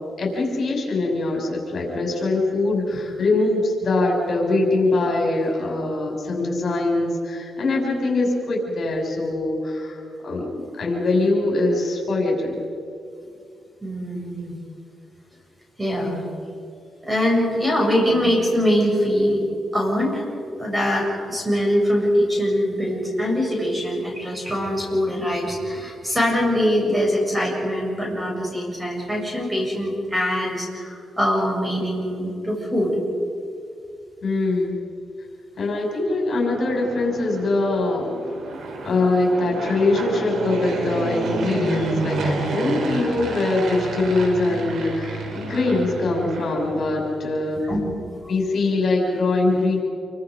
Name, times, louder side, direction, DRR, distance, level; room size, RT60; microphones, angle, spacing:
voice 1, 0.2-12.6 34.2-34.8 35.6-38.1 38.8-47.6 48.3-49.8, left 2 dB, 55° left, -1 dB, 6.3 m, -22 dB
voice 2, 13.8-14.6 15.8-16.2 17.0-19.4 19.7-32.9 47.6-47.8, equal, 10° right, -1 dB, 7.3 m, -23 dB
Fixed-wing aircraft airplane, 36.1-47.2, right 3 dB, 80° right, 3.9 m, -30 dB
28.0 x 24.5 x 5.3 m, 2.4 s
cardioid pair, 85°, 0 cm